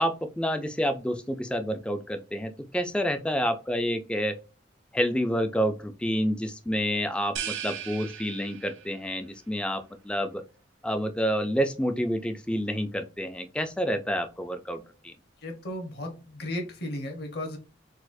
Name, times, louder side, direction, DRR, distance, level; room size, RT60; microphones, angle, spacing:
voice 1, 0.0-4.4 4.9-10.4 10.8-15.1, equal, 5° left, 7 dB, 0.3 m, -28 dB
sound 1, 7.4-9.1, right 8 dB, 80° right, 0.6 m, -37 dB
voice 2, 15.4-17.6, left 1 dB, 55° left, 3 dB, 1.1 m, -35 dB
4.1 x 2.3 x 2.6 m, 0.33 s
head